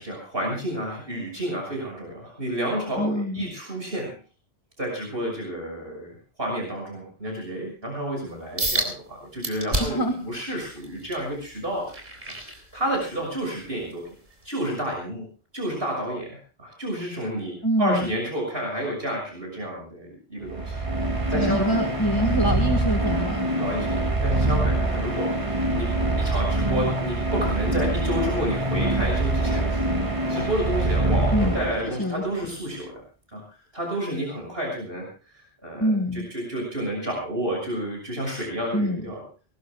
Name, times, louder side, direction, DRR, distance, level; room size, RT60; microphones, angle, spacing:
voice 1, 0.0-4.2 4.8-11.9 12.3-14.1 14.4-15.2 15.5-21.6 23.6-25.9 26.2-33.0 33.3-33.4 33.7-39.2, right 1 dB, 65° right, 0 dB, 6.7 m, -30 dB
voice 2, 3.0-3.5 9.8-10.2 17.6-18.1 21.3-23.5 31.3-32.2 35.8-36.3 38.7-39.1, equal, 20° left, 5 dB, 1.7 m, -25 dB
sound 1, 8.6-8.9 9.4-10.1 10.6-13.2 13.7-13.9 14.4-14.5, right 1 dB, 50° right, 4.2 m, -29 dB
sound 2, 20.4-32.2, right 2 dB, 30° right, 2.5 m, -25 dB
23.0 x 18.5 x 2.3 m, 0.36 s
omnidirectional pair, 1.1 m